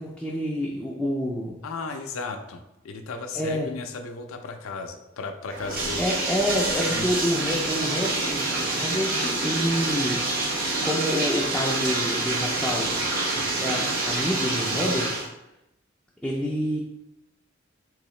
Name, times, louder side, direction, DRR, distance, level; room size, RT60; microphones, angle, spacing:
voice 1, 0.0-1.5 3.3-3.7 6.0-10.5 10.8-13.0 13.3-15.2 16.2-16.8, equal, 5° left, -5 dB, 0.4 m, -28 dB
voice 2, 1.6-6.0 6.9-7.2, left 4 dB, 80° left, 6 dB, 0.4 m, -35 dB
Bathtub (filling or washing), 5.5-15.3, right 2 dB, 45° right, 0.7 m, -27 dB
3.8 x 2.7 x 3.1 m, 0.88 s
head